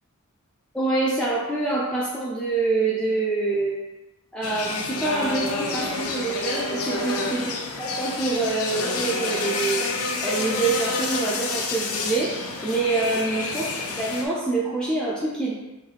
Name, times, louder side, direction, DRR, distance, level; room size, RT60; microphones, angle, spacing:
voice 1, 0.7-3.8 4.3-7.4 7.8-15.5, right 3 dB, 5° left, -6 dB, 0.4 m, -26 dB
sound 1, 4.4-14.3, left 3 dB, 85° left, 0.5 m, -28 dB
3.2 x 2.6 x 4.0 m, 1.0 s
head